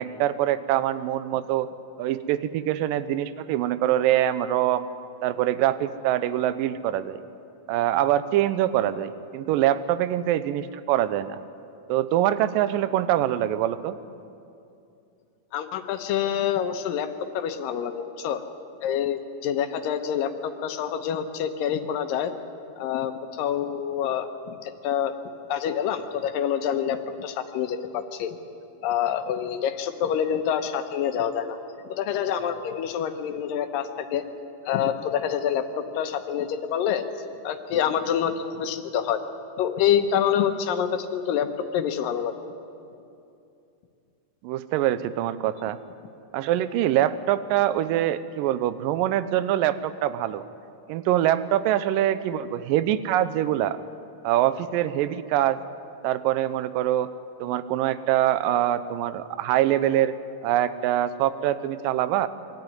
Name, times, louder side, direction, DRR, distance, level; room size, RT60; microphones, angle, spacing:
voice 1, 0.0-1.7 2.0-4.9 5.2-7.2 7.7-11.4 11.9-14.0 44.4-45.8 46.3-50.4 50.9-53.8 54.2-55.6 56.0-57.1 57.4-60.1 60.4-62.3, right 12 dB, 80° right, 14 dB, 2.4 m, -24 dB
voice 2, 15.5-17.1 17.3-18.4 18.8-22.3 22.8-25.1 25.5-28.4 28.8-31.6 31.9-34.2 34.7-35.7 36.0-37.0 37.4-39.2 39.6-42.5, left 9 dB, 80° left, 7 dB, 2.7 m, -27 dB
23.5 x 13.5 x 9.7 m, 2.6 s
omnidirectional pair, 4.0 m